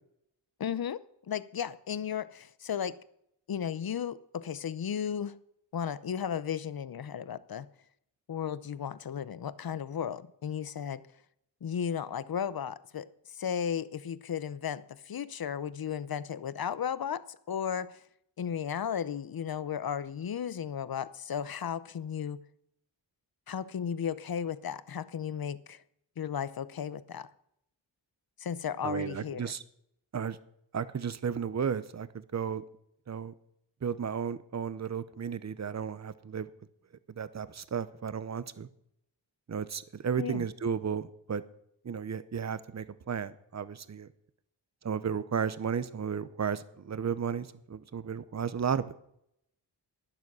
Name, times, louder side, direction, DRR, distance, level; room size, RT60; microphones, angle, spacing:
voice 1, 0.6-1.0 1.3-3.0 3.5-5.4 5.7-7.7 8.3-11.1 11.6-18.0 18.4-22.5 23.5-25.8 26.2-27.3 28.4-29.5 40.2-40.5, left 8 dB, 50° left, 0.8 m, -35 dB
voice 2, 28.8-29.6 30.1-30.4 30.7-32.1 32.3-32.6 33.1-33.3 33.8-36.5 37.2-38.7 39.5-41.4 41.8-44.1 44.8-49.0, right 7 dB, 35° right, 0.8 m, -33 dB
12.0 x 11.0 x 6.2 m
wide cardioid pair, 95°, 45 cm